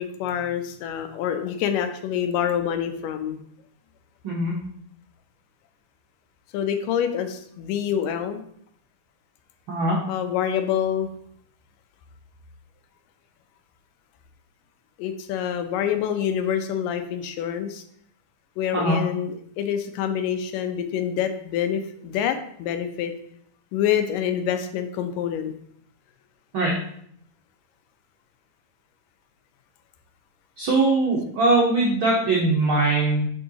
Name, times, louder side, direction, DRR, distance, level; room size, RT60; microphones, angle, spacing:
voice 1, 0.0-3.4 6.5-8.4 10.1-11.1 15.0-17.8 18.6-23.1 23.7-25.5, left 9 dB, 85° left, 8 dB, 2.2 m, -26 dB
voice 2, 30.6-33.3, right 2 dB, 80° right, -3 dB, 1.1 m, -21 dB
6.5 x 5.4 x 2.8 m, 0.66 s
omnidirectional pair, 3.8 m